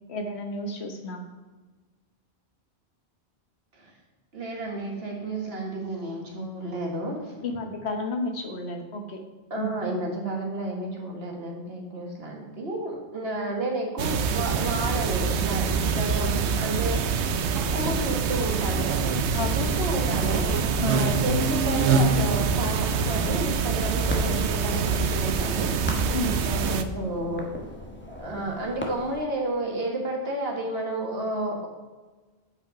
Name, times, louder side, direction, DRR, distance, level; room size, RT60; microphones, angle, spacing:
voice 1, 0.1-1.2 7.4-9.2 9.6-9.7 19.3-19.8 20.8-21.0 26.1-26.4, left 2 dB, 70° left, 4 dB, 1.4 m, -31 dB
voice 2, 4.3-7.4 9.5-17.1 17.5-19.0 19.5-20.4 20.8-25.7 26.4-27.5 28.1-31.7, right 1 dB, 65° right, 0 dB, 1.9 m, -31 dB
sound 1, 14.0-26.8, right 5 dB, 80° right, 0.9 m, -25 dB
sound 2, 16.8-29.2, equal, 10° left, 1.2 m, -40 dB
7.9 x 5.6 x 5.0 m, 1.3 s
omnidirectional pair, 1.1 m